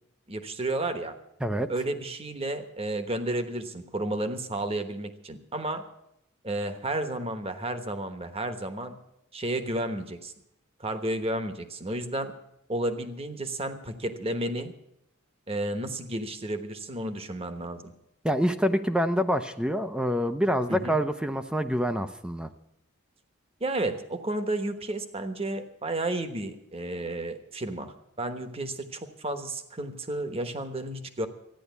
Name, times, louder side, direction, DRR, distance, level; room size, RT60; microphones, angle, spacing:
voice 1, 0.3-1.1 1.7-5.9 6.4-9.0 9.3-10.3 10.8-12.3 12.7-14.7 15.5-17.9 20.7-20.9 23.6-31.3, right 1 dB, 30° right, 8 dB, 1.1 m, -32 dB
voice 2, 18.2-22.5, equal, 5° right, 9 dB, 0.6 m, -26 dB
14.0 x 9.9 x 8.2 m, 0.81 s
head